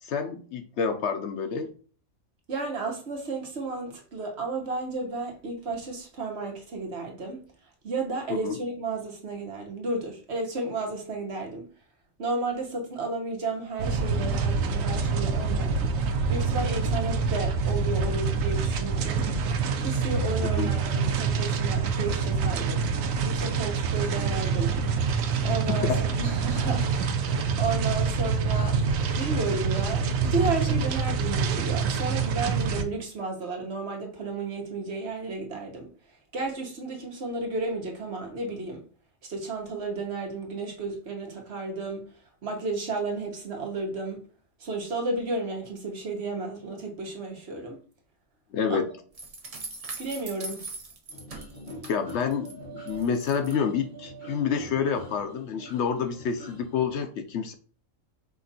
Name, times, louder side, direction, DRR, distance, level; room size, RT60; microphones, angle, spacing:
voice 1, 0.0-1.7 8.4-8.6 20.5-20.7 25.4-26.0 48.5-48.9 51.9-57.5, left 6 dB, 65° left, 0.8 m, -28 dB
voice 2, 2.5-7.4 7.8-11.6 12.2-15.9 16.3-19.3 19.8-22.9 23.2-24.8 25.4-25.9 26.2-28.8 29.2-35.9 36.3-38.8 39.3-42.0 42.4-44.2 44.6-47.8 48.7-48.8 50.0-50.7, right 3 dB, 60° right, 1.3 m, -32 dB
sound 1, 13.8-32.8, right 5 dB, 85° right, 1.0 m, -26 dB
sound 2, 49.1-52.5 52.9-53.5, right 3 dB, 35° right, 0.6 m, -40 dB
sound 3, 51.1-56.9, right 1 dB, 40° left, 1.4 m, -43 dB
5.1 x 2.5 x 4.0 m
omnidirectional pair, 1.3 m